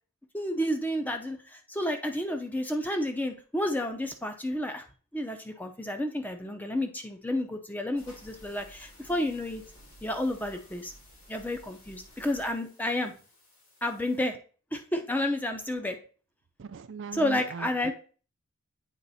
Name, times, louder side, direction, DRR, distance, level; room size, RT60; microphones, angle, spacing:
voice 1, 0.3-4.8 5.1-9.6 10.0-10.9 11.3-13.1 13.8-14.4 14.7-16.0 17.1-17.9, left 1 dB, 5° left, 5 dB, 0.5 m, -31 dB
sound 1, 7.9-14.2, equal, 70° left, 2.9 m, -54 dB
voice 2, 16.6-17.9, right 6 dB, 55° right, 10 dB, 0.4 m, -39 dB
8.2 x 3.2 x 4.1 m, 0.39 s
head